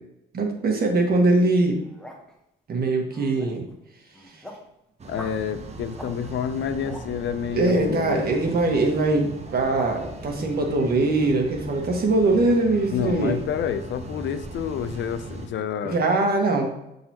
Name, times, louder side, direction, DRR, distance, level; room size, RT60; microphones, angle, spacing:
voice 1, 0.3-1.8 2.7-3.6 4.3-4.4 7.5-13.4 15.8-16.7, right 2 dB, 50° right, 2 dB, 1.5 m, -22 dB
sound 1, 1.7-2.3 3.0-3.7 4.1-4.7 5.1-5.4 5.9-6.1 6.5-7.1 8.4-8.5 9.4-9.9, equal, 5° left, 1.1 m, -43 dB
sound 2, 5.0-15.5, right 2 dB, 35° right, 0.9 m, -39 dB
voice 2, 5.1-8.3 12.9-16.0, left 8 dB, 70° left, 11 dB, 0.5 m, -29 dB
8.4 x 4.0 x 2.9 m, 0.84 s
cardioid pair, 90°, 20 cm